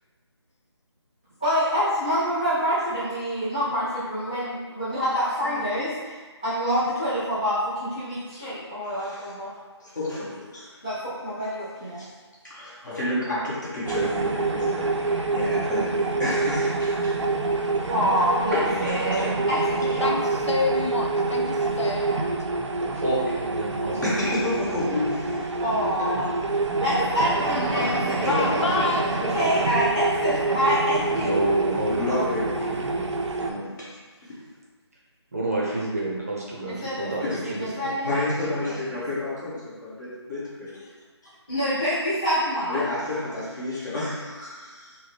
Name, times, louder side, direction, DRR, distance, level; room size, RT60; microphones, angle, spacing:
voice 1, 1.4-9.5 10.8-12.0 17.9-20.1 25.6-26.3 26.8-28.9 29.3-31.3 36.7-39.0 41.5-42.9, equal, 15° left, -14 dB, 0.3 m, -27 dB
voice 2, 5.4-5.8 20.0-22.2 28.2-29.1, left 3 dB, 80° left, 1 dB, 0.5 m, -28 dB
voice 3, 8.8-9.3 9.8-10.7 12.0-12.1 12.4-17.2 18.5-19.4 24.0-25.5 26.1-26.2 27.7-28.0 28.2-28.8 29.2-29.5 31.9-32.7 33.3-34.0 34.3-34.4 37.3-37.4 38.0-40.9 42.7-45.0, left 2 dB, 40° left, -8 dB, 1.2 m, -30 dB
sound 1, 13.8-33.5, right 3 dB, 85° right, 0.4 m, -27 dB
voice 4, 22.9-25.0 31.1-33.6 35.3-38.1 38.4-38.5, right 2 dB, 30° right, -5 dB, 0.6 m, -29 dB
3.6 x 2.1 x 3.2 m, 1.4 s
figure-of-eight pair, 175°, 15 cm